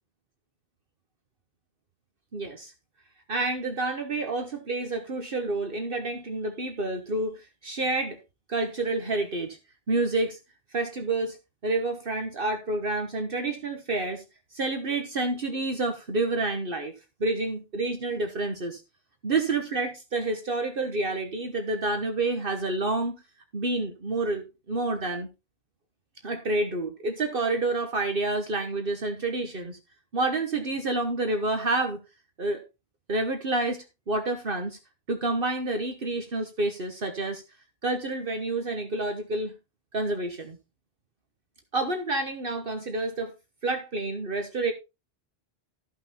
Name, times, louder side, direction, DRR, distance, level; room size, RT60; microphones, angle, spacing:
voice 1, 2.3-2.7 3.3-8.2 8.5-9.6 9.9-10.4 10.7-11.4 11.6-14.2 14.5-16.9 17.2-18.8 19.2-23.2 23.5-25.3 26.2-29.8 30.1-32.0 32.4-32.6 33.1-34.8 35.1-37.4 37.8-39.5 39.9-40.6 41.7-43.3 43.6-44.7, right 2 dB, 60° right, 1.5 m, -29 dB
13.5 x 5.8 x 4.3 m
omnidirectional pair, 1.1 m